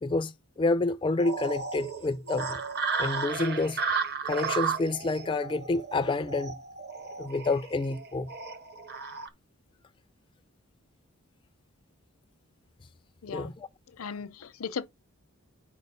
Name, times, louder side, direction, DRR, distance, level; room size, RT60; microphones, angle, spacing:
voice 1, 0.0-2.6 3.0-3.8 4.2-6.6 7.2-8.3 13.3-13.7, left 3 dB, 25° left, 0.3 m, -28 dB
sound 1, 1.2-9.3, right 5 dB, 50° right, 0.8 m, -34 dB
voice 2, 13.2-13.5 13.9-14.9, left 6 dB, 75° left, 0.7 m, -37 dB
5.2 x 4.8 x 5.5 m
head